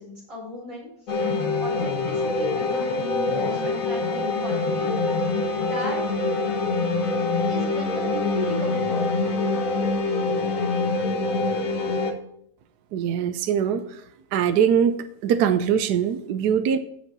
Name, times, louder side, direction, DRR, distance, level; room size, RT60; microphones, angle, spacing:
voice 1, 0.0-1.3 1.6-4.9 5.2-6.0 7.4-9.4, left 1 dB, 45° right, -4 dB, 5.1 m, -36 dB
Annoying drones, 1.1-12.1, left 3 dB, 50° left, 1.7 m, -25 dB
voice 2, 12.9-14.0 14.3-15.0 15.2-16.8, right 8 dB, 70° right, 9 dB, 1.2 m, -22 dB
15.5 x 5.3 x 4.0 m, 0.72 s
omnidirectional pair, 1.9 m